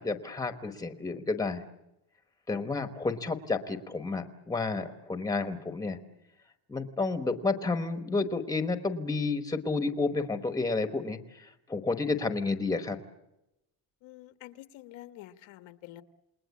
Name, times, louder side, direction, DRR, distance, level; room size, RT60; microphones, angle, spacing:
voice 1, 0.0-1.6 2.5-6.0 6.7-13.0, left 3 dB, 10° left, 8 dB, 1.1 m, -31 dB
voice 2, 14.0-16.0, left 15 dB, 85° left, 9 dB, 1.4 m, -48 dB
28.5 x 20.0 x 8.4 m, 0.92 s
cardioid pair, 170°, 45 cm